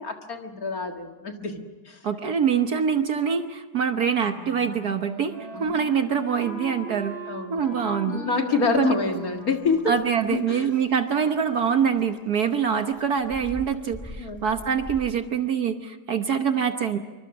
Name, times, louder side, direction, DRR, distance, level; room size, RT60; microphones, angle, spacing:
voice 1, 0.0-2.0 5.5-5.8 7.3-10.0 10.3-10.7 14.2-14.4, left 4 dB, 45° left, 4 dB, 2.2 m, -27 dB
voice 2, 2.0-7.1 7.5-8.2 8.8-8.9 9.9-17.0, right 7 dB, 55° right, 7 dB, 1.4 m, -24 dB
Wind instrument woodwind instrument, 4.2-10.1, right 3 dB, 70° right, 4.6 m, -40 dB
sound 1, 8.9-15.1, equal, 10° left, 1.8 m, -44 dB
27.0 x 24.5 x 6.0 m, 1.3 s
omnidirectional pair, 2.3 m